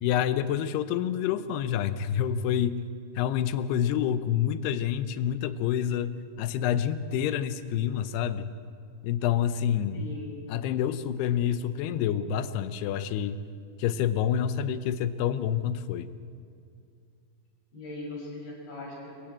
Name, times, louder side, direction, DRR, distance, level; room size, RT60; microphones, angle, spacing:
voice 1, 0.0-2.8 3.2-8.5 9.0-10.1 10.5-13.4 13.8-16.1, left 9 dB, 85° left, 13 dB, 2.9 m, -28 dB
voice 2, 9.9-10.3 17.7-19.3, left 2 dB, 70° left, -2 dB, 7.9 m, -39 dB
25.0 x 15.0 x 8.7 m, 2.4 s
omnidirectional pair, 4.7 m